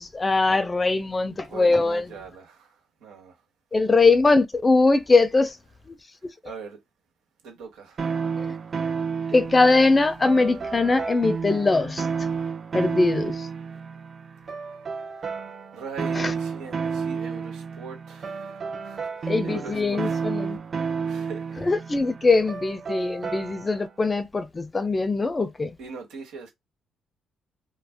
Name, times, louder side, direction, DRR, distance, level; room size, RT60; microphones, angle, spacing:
voice 1, 0.0-2.1 3.7-5.6 5.9-6.0 6.2-6.3 8.4-8.5 9.3-12.1 12.7-13.5 16.1-16.3 19.3-20.6 21.6-25.7, left 3 dB, 25° left, 0.4 m, -21 dB
voice 2, 1.5-3.4 6.4-6.8 7.4-8.1 8.7-8.9 15.1-15.3 15.7-20.2 20.8-21.7 25.8-26.5, right 5 dB, 90° right, 1.2 m, -41 dB
sound 1, 8.0-23.9, right 5 dB, 40° right, 0.7 m, -31 dB
2.5 x 2.0 x 3.4 m
cardioid pair, 90°, 0 cm